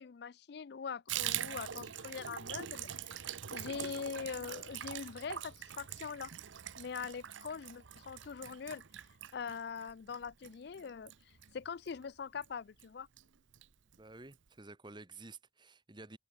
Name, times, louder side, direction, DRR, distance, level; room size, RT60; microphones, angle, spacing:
voice 1, 0.0-3.2 3.5-6.3 6.8-8.8 9.3-13.1, left 6 dB, 55° left, 0.4 m, -43 dB
Water tap faucet / Bathtub (filling or washing), 1.1-12.0 12.4-12.5 12.8-12.9 13.2-13.7 13.9-14.0 14.3-14.4, right 10 dB, 75° right, 0.8 m, -43 dB
voice 2, 14.0-16.2, right 3 dB, 25° right, 1.2 m, -52 dB
head